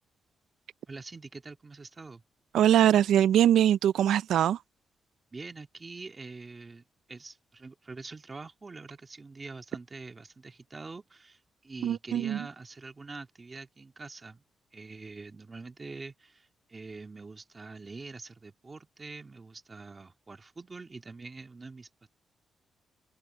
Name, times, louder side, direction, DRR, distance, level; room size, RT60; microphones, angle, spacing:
voice 1, 0.9-2.2 5.3-14.4 14.7-22.1, right 3 dB, 25° right, 2.1 m, -45 dB
voice 2, 2.5-4.6 11.8-12.4, right 11 dB, 90° right, 0.4 m, -22 dB
cardioid pair, 125°, 0 cm